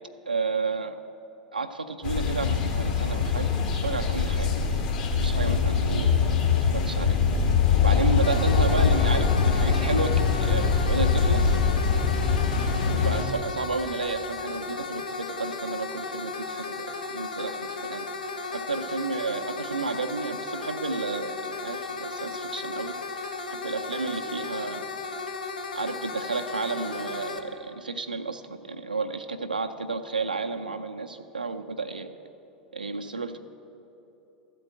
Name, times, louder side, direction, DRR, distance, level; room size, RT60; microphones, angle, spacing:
voice 1, 0.3-1.0 1.5-4.7 5.2-7.2 7.7-10.2 10.4-11.6 12.8-18.1 18.5-22.9 23.5-24.9 25.7-32.2 32.7-33.4, right 4 dB, 85° right, 5 dB, 0.4 m, -32 dB
sound 1, 2.0-13.2, left 5 dB, 60° left, 1.5 m, -23 dB
sound 2, 8.2-27.4, left 3 dB, 75° left, 0.7 m, -35 dB
13.5 x 4.5 x 7.8 m, 2.9 s
figure-of-eight pair, 85°, 5 cm